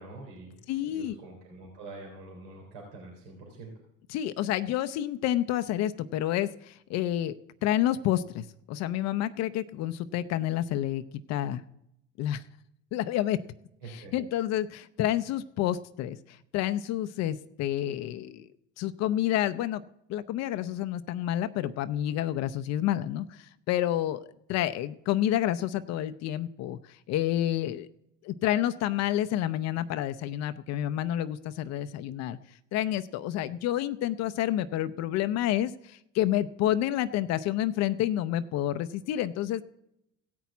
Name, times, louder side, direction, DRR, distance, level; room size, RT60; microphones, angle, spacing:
voice 1, 0.0-0.6 0.9-3.7 13.8-14.1, right 2 dB, 80° right, -1 dB, 3.4 m, -45 dB
voice 2, 0.7-1.2 4.1-7.3 7.6-11.0 11.3-11.6 12.2-12.4 12.9-13.4 13.9-18.5 18.8-19.8 20.1-26.8 27.1-27.9 28.2-32.4 32.7-39.6, left 12 dB, 60° left, 12 dB, 0.6 m, -29 dB
15.5 x 6.1 x 8.2 m, 0.82 s
supercardioid pair, 90°, 29 cm